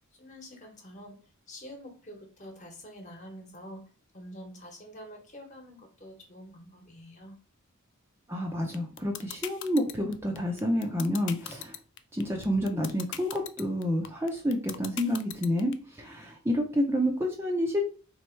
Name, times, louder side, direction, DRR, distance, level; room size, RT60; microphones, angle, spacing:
voice 1, 0.2-1.2 1.5-3.9 4.1-7.4, equal, 35° left, 2 dB, 1.1 m, -46 dB
voice 2, 8.3-11.8 12.1-17.8, equal, 10° right, 1 dB, 0.5 m, -29 dB
sound 1, 8.7-15.7, left 11 dB, 55° left, 0.4 m, -38 dB
3.5 x 3.2 x 4.4 m, 0.37 s
head